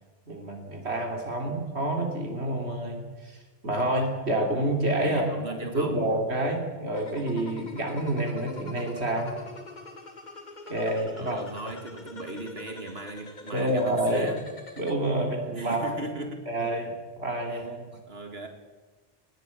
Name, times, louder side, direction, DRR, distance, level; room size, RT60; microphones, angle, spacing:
voice 1, 0.3-5.3 5.7-9.4 10.7-11.4 13.5-14.3 14.8-16.0 16.5-17.8, right 1 dB, 85° right, 2 dB, 3.3 m, -28 dB
voice 2, 5.0-6.1 9.4-9.5 11.1-14.5 15.5-16.5 18.1-18.5, right 2 dB, 70° right, 5 dB, 2.4 m, -38 dB
sound 1, 7.0-14.9, left 2 dB, 45° left, 2.1 m, -44 dB
20.5 x 20.0 x 8.4 m, 1.3 s
omnidirectional pair, 1.1 m